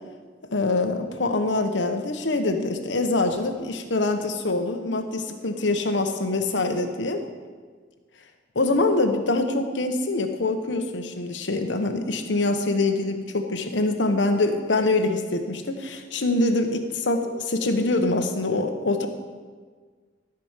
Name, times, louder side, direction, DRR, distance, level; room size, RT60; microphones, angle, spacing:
voice 1, 0.5-7.2 8.5-19.1, left 2 dB, 85° left, 6 dB, 1.0 m, -24 dB
13.5 x 5.0 x 7.4 m, 1.5 s
head